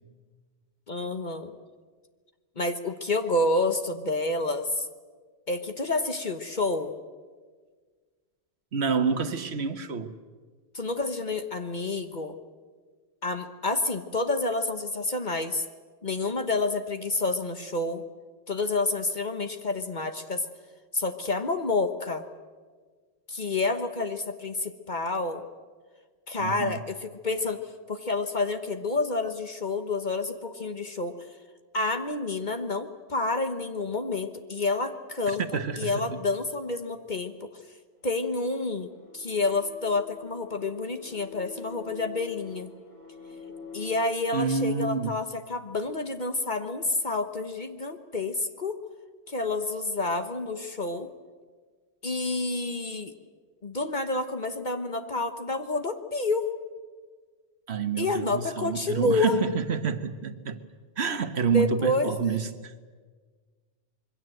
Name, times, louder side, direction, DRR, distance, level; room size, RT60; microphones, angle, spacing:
voice 1, 0.9-1.5 2.6-4.9 5.5-7.0 10.7-12.3 13.2-15.6 16.0-18.0 18.5-20.5 20.9-22.2 23.3-25.5 26.3-27.6 27.9-31.1 31.7-35.4 35.8-37.5 38.0-42.7 43.7-48.8 49.3-51.1 52.0-53.1 53.6-56.5 58.0-59.4 61.5-62.3, left 3 dB, 45° left, 7 dB, 1.3 m, -29 dB
voice 2, 8.7-10.1 26.4-26.8 35.3-36.2 44.3-45.2 57.7-60.6 61.0-62.7, right 6 dB, 70° right, 10 dB, 1.5 m, -28 dB
sound 1, 38.0-43.9, left 5 dB, 65° left, 6.9 m, -47 dB
26.5 x 22.0 x 7.8 m, 1.5 s
omnidirectional pair, 1.1 m